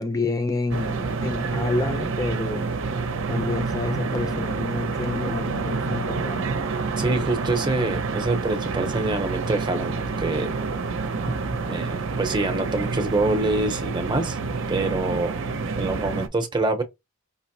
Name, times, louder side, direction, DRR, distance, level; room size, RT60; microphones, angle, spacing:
voice 1, 0.0-2.7 3.3-6.5, left 2 dB, 20° left, 0.6 m, -28 dB
sound 1, 0.7-16.3, right 4 dB, 65° right, 0.6 m, -28 dB
voice 2, 7.0-10.5 11.3-11.4 11.7-14.4 14.7-15.4 15.8-16.8, right 2 dB, 20° right, 0.7 m, -25 dB
5.4 x 2.0 x 2.7 m
head